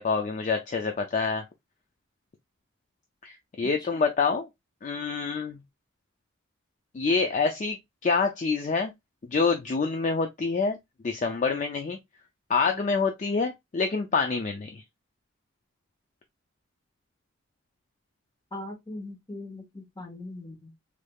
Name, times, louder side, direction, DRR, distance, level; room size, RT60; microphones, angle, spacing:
voice 1, 0.0-1.5 3.2-4.5 4.8-5.6 6.9-8.9 9.3-10.8 11.0-12.0 12.5-14.8, left 4 dB, 35° left, 0.3 m, -26 dB
voice 2, 18.5-20.7, left 2 dB, 20° left, 0.8 m, -40 dB
3.3 x 3.1 x 2.2 m
head